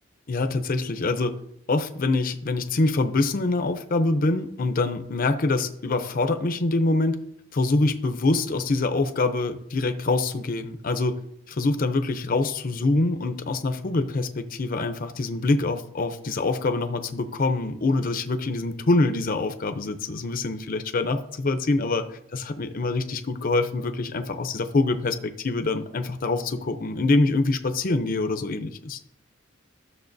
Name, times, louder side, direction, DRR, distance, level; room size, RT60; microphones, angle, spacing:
voice 1, 0.3-1.3 1.7-7.2 7.5-11.2 11.5-29.0, left 2 dB, 40° left, 8 dB, 0.5 m, -25 dB
13.0 x 6.5 x 2.6 m, 0.72 s
head